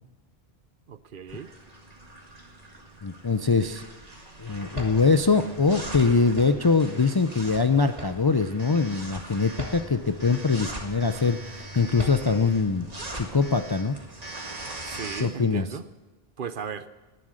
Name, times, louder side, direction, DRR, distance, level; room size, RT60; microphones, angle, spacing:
voice 1, 0.9-1.5 14.8-15.9 16.4-16.9, right 7 dB, 60° right, 13 dB, 0.8 m, -36 dB
sound 1, 1.3-15.2, right 1 dB, 40° right, 1.9 m, -40 dB
voice 2, 3.0-3.8 4.4-12.9 13.1-14.0 15.2-15.7, left 4 dB, 35° left, 9 dB, 0.4 m, -23 dB
18.5 x 11.0 x 6.4 m, 1.2 s
omnidirectional pair, 1.0 m